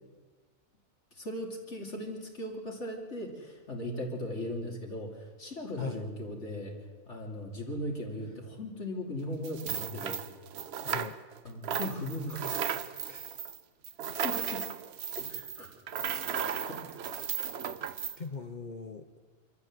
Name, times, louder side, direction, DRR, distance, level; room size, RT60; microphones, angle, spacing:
voice 1, 1.1-6.8 7.1-10.2 11.4-12.7 14.1-14.6 15.2-15.7 16.7-16.9, left 1 dB, 55° left, 0 dB, 3.1 m, -38 dB
voice 2, 5.8-6.1 10.8-11.2 13.1-13.5 16.3-16.7 18.2-19.2, left 5 dB, 40° left, 8 dB, 0.9 m, -41 dB
sound 1, 9.4-11.4 11.6-18.2, right 8 dB, 55° right, 1.0 m, -35 dB
24.5 x 14.5 x 7.6 m, 1.4 s
omnidirectional pair, 1.5 m